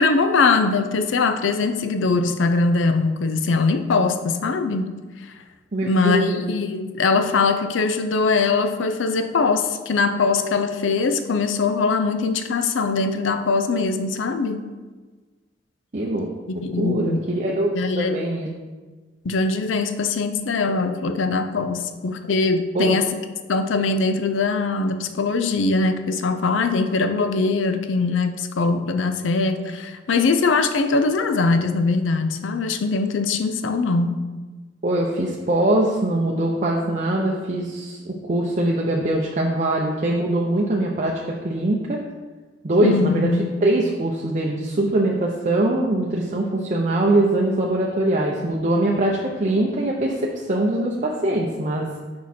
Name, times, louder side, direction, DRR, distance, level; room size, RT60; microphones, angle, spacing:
voice 1, 0.0-4.9 5.8-14.6 16.6-17.3 17.7-18.2 19.2-23.1 23.5-34.2 42.8-43.5, left 4 dB, 90° left, 8 dB, 0.5 m, -21 dB
voice 2, 5.7-6.5 15.9-16.3 16.5-18.5 22.7-23.0 34.8-42.0 42.6-43.3 43.6-51.9, right 1 dB, 40° right, -2 dB, 0.6 m, -22 dB
6.1 x 4.7 x 4.3 m, 1.3 s
head